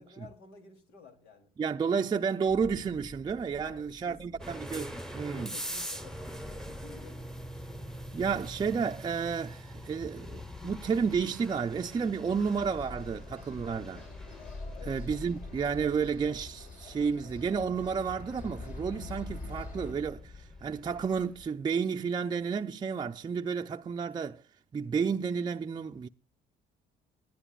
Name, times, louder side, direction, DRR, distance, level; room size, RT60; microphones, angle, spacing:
voice 1, 0.0-1.5 3.6-4.2 5.3-7.6 14.5-15.0, left 4 dB, 85° left, 3.3 m, -53 dB
voice 2, 1.6-5.5 8.1-14.0 14.9-24.4 24.7-26.1, right 6 dB, 25° right, 0.5 m, -31 dB
sound 1, 2.5-21.5, left 3 dB, 35° left, 5.1 m, -47 dB
sound 2, 4.4-21.2, right 1 dB, 5° left, 1.0 m, -45 dB
sound 3, 12.6-19.9, left 4 dB, 55° left, 4.5 m, -48 dB
20.5 x 11.0 x 2.4 m
cardioid pair, 110°, 17 cm